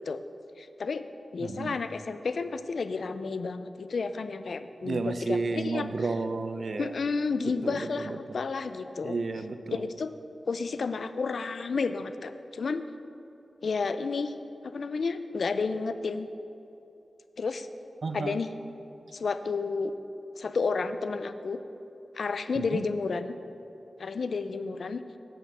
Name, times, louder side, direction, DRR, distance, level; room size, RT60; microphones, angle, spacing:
voice 1, 0.6-1.0 1.3-5.9 6.8-9.2 9.7-10.1 10.5-12.8 13.6-14.3 14.6-16.3 17.4-17.7 18.1-18.5 19.1-19.9 20.4-21.6 22.1-23.3 24.0-25.0, left 4 dB, 75° left, 11 dB, 0.5 m, -31 dB
voice 2, 1.4-1.8 4.8-6.9 7.6-8.2 9.0-9.8 18.0-18.4 22.6-22.8, right 3 dB, 65° right, 10 dB, 0.5 m, -32 dB
9.2 x 8.0 x 6.2 m, 2.9 s
wide cardioid pair, 75°, 0 cm